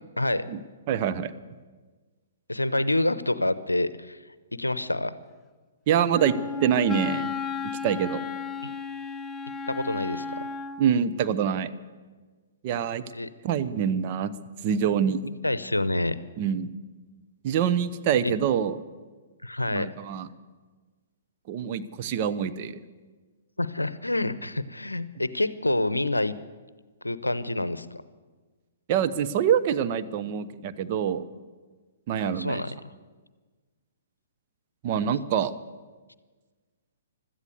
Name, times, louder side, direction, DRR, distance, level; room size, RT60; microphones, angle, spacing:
voice 1, 0.2-0.5 2.5-4.2 4.5-5.2 8.6-8.7 9.7-10.5 13.1-13.3 15.4-16.1 18.2-18.3 19.4-19.9 23.6-26.3 27.0-27.9 32.2-32.9, left 1 dB, 85° left, 16 dB, 0.7 m, -27 dB
voice 2, 0.9-1.3 5.9-6.4 6.6-7.3 7.8-8.2 10.8-11.7 12.6-13.0 13.4-14.3 14.6-15.3 16.4-16.7 17.4-18.8 19.7-20.3 21.5-22.8 28.9-31.2 32.1-32.6 34.8-35.5, right 8 dB, 40° right, 10 dB, 0.8 m, -25 dB
Wind instrument woodwind instrument, 6.1-10.9, left 5 dB, 10° left, 0.7 m, -33 dB
16.5 x 13.0 x 6.8 m, 1.4 s
figure-of-eight pair, 120°, 0 cm